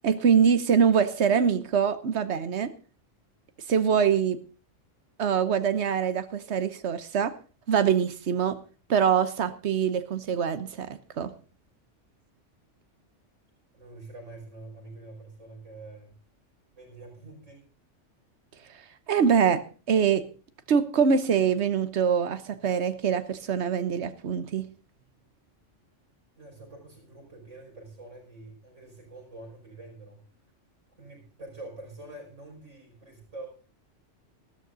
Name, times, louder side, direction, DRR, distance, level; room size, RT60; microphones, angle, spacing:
voice 1, 0.0-2.7 3.7-4.4 5.2-7.4 7.7-8.6 8.9-11.3 19.1-20.3 20.7-24.7, right 7 dB, 65° right, 12 dB, 1.3 m, -24 dB
voice 2, 13.7-16.2 16.7-17.6 26.4-30.2 31.0-33.5, right 2 dB, 85° right, -1 dB, 6.2 m, -46 dB
15.0 x 13.0 x 3.9 m, 0.35 s
omnidirectional pair, 1.2 m